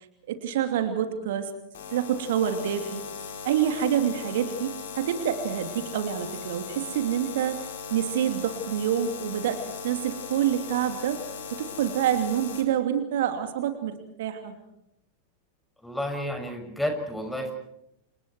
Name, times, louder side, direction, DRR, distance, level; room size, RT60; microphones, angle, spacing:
voice 1, 0.3-1.5 1.9-3.0 3.4-11.2 11.5-14.6, right 9 dB, 55° right, 7 dB, 2.7 m, -27 dB
sound 1, 1.7-12.6, left 6 dB, 60° left, 4.6 m, -38 dB
voice 2, 15.8-17.5, equal, 5° left, 4 dB, 6.3 m, -31 dB
30.0 x 28.5 x 4.6 m, 0.79 s
figure-of-eight pair, 90°, 0 cm